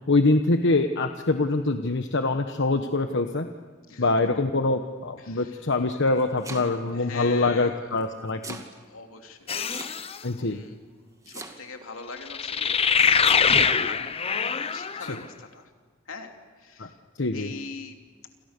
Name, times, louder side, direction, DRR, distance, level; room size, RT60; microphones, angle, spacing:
voice 1, 0.1-3.5 4.0-8.6 10.2-10.6 15.1-15.2 16.8-16.9 17.2-17.5, left 2 dB, 60° left, 7 dB, 1.2 m, -24 dB
voice 2, 5.2-5.7 6.9-8.0 8.9-10.0 10.3-10.8 11.3-14.0 14.5-15.7 16.1-16.9 17.3-18.0, left 4 dB, 80° left, 4 dB, 3.1 m, -42 dB
Domestic sounds home sounds, 6.1-7.0 8.0-8.7 9.7-10.3 11.2-11.9 13.0-13.5, right 3 dB, 15° right, 2.3 m, -40 dB
sound 1, 9.5-10.2 12.3-15.2, left 6 dB, 30° left, 0.8 m, -23 dB
28.5 x 28.0 x 6.8 m, 1.5 s
head